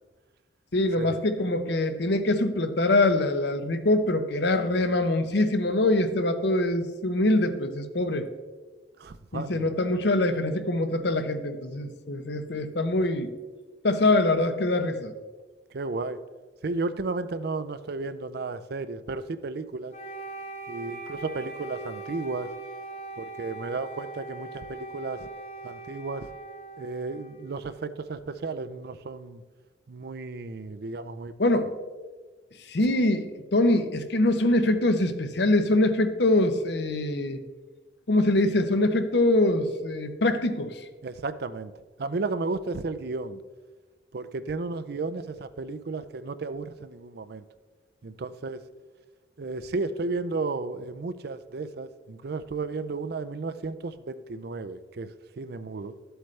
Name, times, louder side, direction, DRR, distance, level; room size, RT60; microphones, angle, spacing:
voice 1, 0.7-8.3 9.3-13.3 13.8-15.1 31.4-31.7 32.7-33.3 33.5-37.4 38.1-40.7, left 2 dB, 65° left, 9 dB, 0.8 m, -24 dB
voice 2, 9.0-9.7 15.7-16.2 16.6-19.9 20.7-22.5 23.2-25.3 25.6-26.3 26.8-29.4 29.9-31.3 41.0-41.7 42.0-43.4 44.1-47.4 48.0-48.6 49.4-55.9, right 3 dB, 60° right, 12 dB, 0.5 m, -33 dB
Wind instrument woodwind instrument, 19.9-28.0, right 3 dB, 40° left, 1.1 m, -41 dB
12.5 x 7.9 x 3.2 m, 1.3 s
head